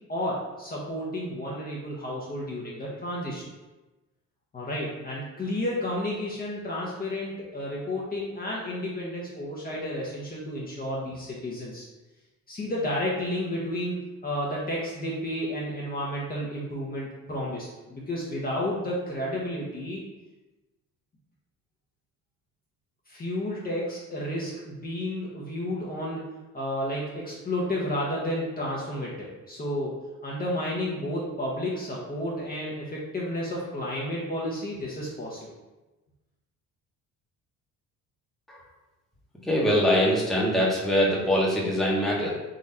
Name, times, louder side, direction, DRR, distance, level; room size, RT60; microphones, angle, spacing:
voice 1, 0.1-3.5 4.5-11.9 12.5-14.0 14.2-20.0 23.1-26.3 26.5-29.9 30.2-35.5, left 1 dB, 25° left, -5 dB, 1.0 m, -31 dB
voice 2, 39.4-42.3, equal, ahead, -5 dB, 1.2 m, -23 dB
3.8 x 3.0 x 4.2 m, 1.1 s
cardioid pair, 95°, 34 cm